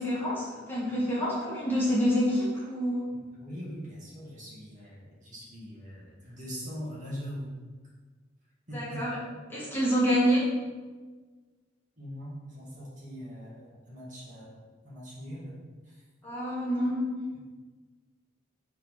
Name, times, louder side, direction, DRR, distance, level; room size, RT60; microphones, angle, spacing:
voice 1, 0.0-3.1 8.7-9.1 9.5-10.5 16.2-17.2, equal, 10° left, -8 dB, 1.6 m, -27 dB
voice 2, 3.1-7.5 8.7-9.0 12.0-15.6 15.8-16.0 17.3-17.4, equal, 40° right, -6 dB, 1.9 m, -42 dB
6.6 x 3.8 x 4.8 m, 1.4 s
head